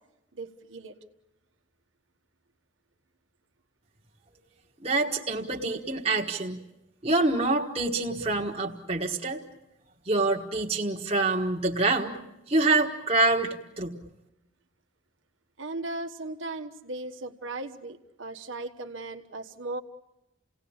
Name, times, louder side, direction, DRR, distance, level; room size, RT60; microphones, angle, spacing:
voice 1, 0.3-1.0 15.6-19.8, right 2 dB, 80° right, 6 dB, 1.4 m, -37 dB
voice 2, 4.8-6.6 7.0-9.4 10.0-12.2 12.5-14.0, right 2 dB, 30° right, 0 dB, 1.4 m, -26 dB
29.5 x 18.0 x 8.7 m, 0.95 s
head